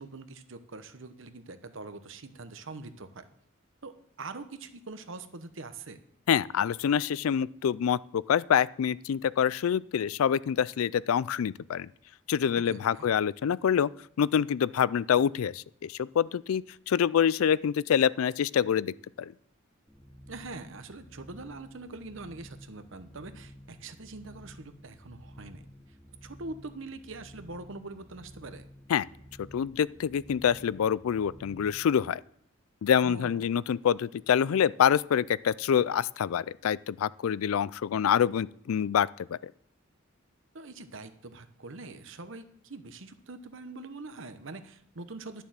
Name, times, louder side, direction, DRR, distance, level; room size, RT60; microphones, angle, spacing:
voice 1, 0.0-3.3 3.8-6.0 12.7-13.1 20.3-25.6 25.9-26.0 26.2-28.6 33.0-33.5 40.5-45.4, right 3 dB, 65° right, 10 dB, 1.0 m, -43 dB
voice 2, 6.3-11.9 12.3-13.9 14.2-19.3 28.9-29.0 29.5-32.2 32.8-39.1 39.4-39.5, left 8 dB, 85° left, 21 dB, 0.4 m, -26 dB
sound 1, 19.9-32.0, equal, 5° left, 0.9 m, -52 dB
11.5 x 6.9 x 7.5 m, 0.67 s
head